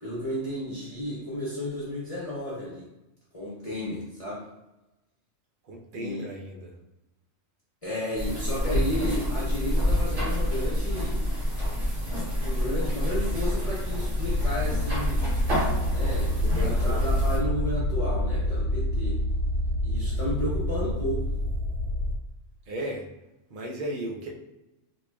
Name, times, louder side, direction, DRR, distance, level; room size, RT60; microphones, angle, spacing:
voice 1, 0.0-2.9 3.3-4.4 5.9-6.2 7.8-11.3 12.4-15.3 15.9-16.3 16.6-19.2 19.8-21.3, left 1 dB, 30° left, -8 dB, 0.9 m, -33 dB
voice 2, 5.6-6.8 16.3-17.1 22.7-23.1 23.5-24.3, right 1 dB, 50° right, -1 dB, 0.7 m, -35 dB
sound 1, 8.2-17.4, equal, 70° right, 1.6 m, -27 dB
sound 2, 14.2-22.2, left 1 dB, 75° left, 1.0 m, -28 dB
4.0 x 3.1 x 2.3 m, 0.97 s
omnidirectional pair, 1.3 m